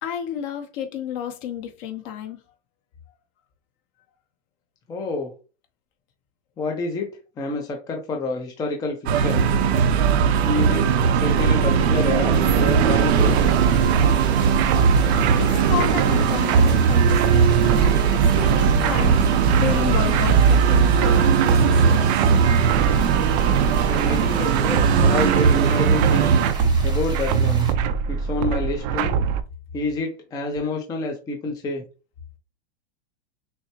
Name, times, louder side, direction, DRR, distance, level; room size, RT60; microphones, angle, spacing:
voice 1, 0.0-2.4 15.4-22.4, left 9 dB, 45° left, 1.0 m, -31 dB
voice 2, 4.9-5.3 6.6-9.5 10.4-10.9 11.1-13.4 23.9-26.3 26.8-27.7 28.1-29.2 29.7-31.8, left 3 dB, 10° left, 0.5 m, -28 dB
sound 1, 9.1-26.5, right 6 dB, 85° right, 0.7 m, -19 dB
sound 2, 12.8-29.4, right 6 dB, 40° right, 0.4 m, -22 dB
sound 3, 13.1-27.7, right 3 dB, 15° right, 0.8 m, -39 dB
6.2 x 2.1 x 2.9 m
supercardioid pair, 140°, 31 cm